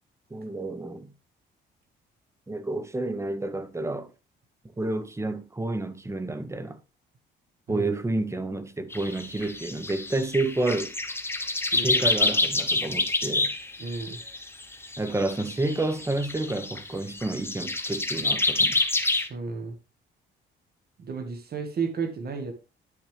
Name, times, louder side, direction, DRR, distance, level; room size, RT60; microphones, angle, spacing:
voice 1, 0.3-1.1 2.5-4.1 4.8-6.8 7.7-10.9 11.7-13.5 15.0-18.8, right 2 dB, 15° right, 1.0 m, -30 dB
sound 1, 8.9-19.3, left 2 dB, 10° left, 1.1 m, -27 dB
voice 2, 13.8-14.2 19.3-19.8 21.0-22.5, right 5 dB, 50° right, 1.7 m, -32 dB
9.8 x 6.3 x 3.4 m
cardioid pair, 90°, 20 cm